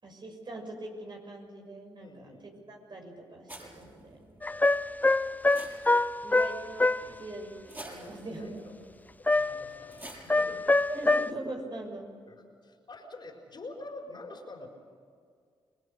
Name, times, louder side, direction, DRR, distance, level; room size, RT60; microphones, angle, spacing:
voice 1, 0.0-2.3 2.7-4.3 6.2-7.5 7.8-8.7 10.9-12.1, right 2 dB, 45° right, 2 dB, 6.2 m, -41 dB
voice 2, 2.0-2.6 4.3-4.5 7.0-7.3 8.0-8.8 9.2-10.8 12.3-14.7, left 2 dB, 45° left, 2 dB, 4.7 m, -47 dB
sound 1, 3.5-11.0, right 1 dB, 20° right, 7.1 m, -51 dB
sound 2, 4.4-7.1 9.3-9.8 10.3-11.3, left 2 dB, 15° left, 0.5 m, -25 dB
27.5 x 21.0 x 6.7 m, 2.1 s
supercardioid pair, 45°, 10 cm